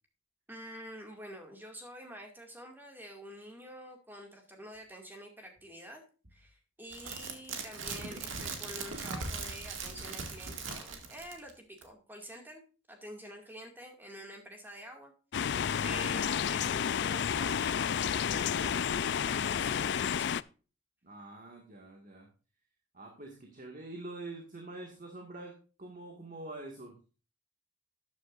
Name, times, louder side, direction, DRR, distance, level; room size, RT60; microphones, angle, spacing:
voice 1, 0.5-6.0 6.3-12.6 12.9-15.1 15.8-20.4, equal, 10° right, 3 dB, 2.2 m, -48 dB
sound 1, 6.9-11.5 11.8-11.9, right 4 dB, 75° right, 2.1 m, -39 dB
sound 2, 15.3-20.4, left 8 dB, 60° left, 0.4 m, -31 dB
voice 2, 15.8-16.3 21.0-22.3 22.9-27.0, right 2 dB, 40° right, 1 dB, 2.0 m, -46 dB
12.5 x 9.4 x 2.6 m, 0.34 s
head